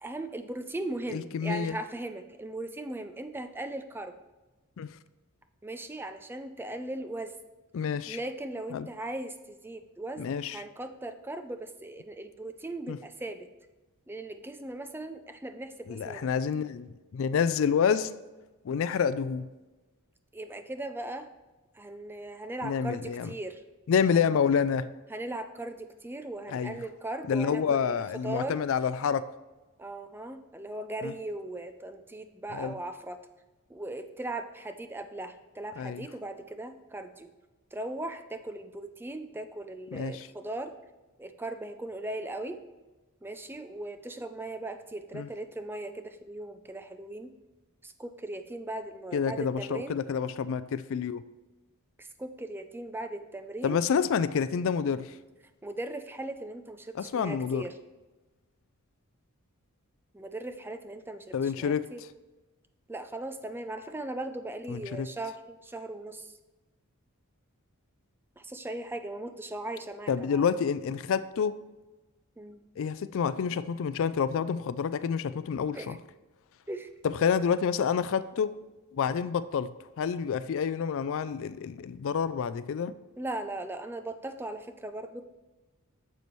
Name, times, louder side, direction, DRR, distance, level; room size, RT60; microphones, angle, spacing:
voice 1, 0.0-4.2 5.6-7.3 8.1-13.5 14.1-16.4 20.3-21.3 21.7-23.6 25.1-28.6 29.8-33.2 33.7-37.3 37.7-40.7 41.2-42.6 43.2-47.4 47.8-50.0 52.0-53.8 55.6-57.8 60.1-62.0 62.9-66.3 68.4-70.4 72.4-72.6 75.7-76.0 76.7-76.9 83.2-85.2, right 2 dB, 10° right, 8 dB, 0.4 m, -38 dB
voice 2, 1.1-1.8 4.8-4.9 7.7-8.2 8.7-8.9 10.2-10.6 12.9-13.0 15.9-18.1 18.6-19.5 22.6-23.3 23.9-24.9 26.5-26.8 27.3-29.3 31.0-31.1 32.5-32.8 35.8-36.1 39.9-40.3 45.1-45.3 49.1-51.2 53.6-55.1 57.0-57.7 61.3-61.8 64.7-65.1 70.1-71.6 72.8-76.0 77.2-78.5 78.9-82.9, left 6 dB, 60° left, 15 dB, 0.3 m, -28 dB
9.3 x 6.8 x 3.1 m, 1.2 s
head